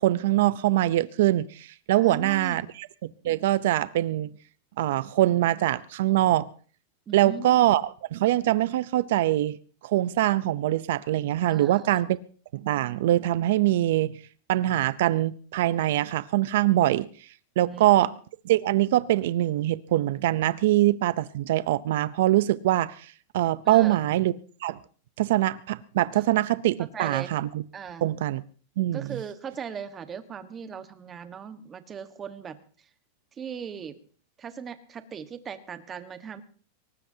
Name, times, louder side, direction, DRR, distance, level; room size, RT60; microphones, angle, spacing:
voice 1, 0.0-4.3 4.8-6.5 7.1-9.6 9.8-12.2 12.5-14.2 14.5-17.1 17.6-18.1 18.5-24.3 24.6-24.8 25.2-27.6 28.0-28.4 28.8-29.1, right 14 dB, 70° right, 0.6 m, -23 dB
voice 2, 2.0-2.7 7.1-7.7 11.5-11.9 16.7-16.8 17.6-18.1 23.6-24.2 26.8-27.3 27.7-28.1 28.9-32.9 33.3-34.0 34.4-36.4, right 7 dB, 20° right, 1.4 m, -39 dB
23.0 x 19.0 x 2.8 m
supercardioid pair, 145°, 0 cm